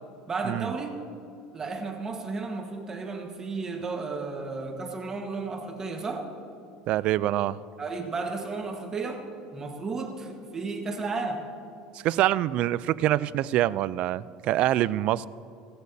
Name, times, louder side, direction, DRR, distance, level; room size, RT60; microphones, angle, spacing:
voice 1, 0.3-0.9 1.5-6.3 7.8-9.2 9.5-11.5, right 4 dB, 25° right, 3 dB, 1.4 m, -33 dB
voice 2, 6.9-7.6 12.0-15.3, right 14 dB, 55° right, 19 dB, 0.3 m, -25 dB
18.0 x 14.5 x 2.8 m, 2.5 s
supercardioid pair, 120°, 2 cm